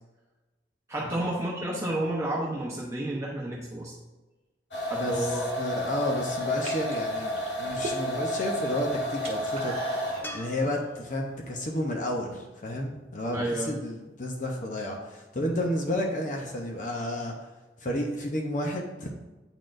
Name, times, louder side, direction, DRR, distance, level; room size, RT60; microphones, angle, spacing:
voice 1, 0.9-3.9 4.9-5.5 13.3-13.7, right 1 dB, 15° right, -5 dB, 0.8 m, -31 dB
sound 1, 4.7-10.4, equal, 80° left, 1.1 m, -31 dB
voice 2, 4.9-9.7 10.3-17.5 17.8-19.1, left 1 dB, 45° left, 1 dB, 0.7 m, -31 dB
sound 2, 5.6-5.9 6.5-8.3 8.6-10.3, right 1 dB, 35° right, 1.0 m, -39 dB
sound 3, 10.2-13.5 16.7-16.8, equal, 10° left, 0.4 m, -46 dB
9.0 x 4.1 x 2.5 m, 1.1 s
head